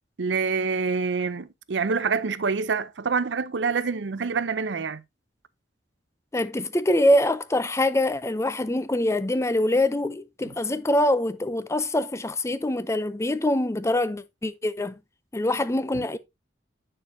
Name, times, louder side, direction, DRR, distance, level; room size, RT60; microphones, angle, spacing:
voice 1, 0.2-5.0, right 5 dB, 80° right, 0.6 m, -26 dB
voice 2, 6.3-15.0 15.3-16.2, left 1 dB, 15° left, 0.5 m, -24 dB
8.9 x 6.6 x 2.6 m
head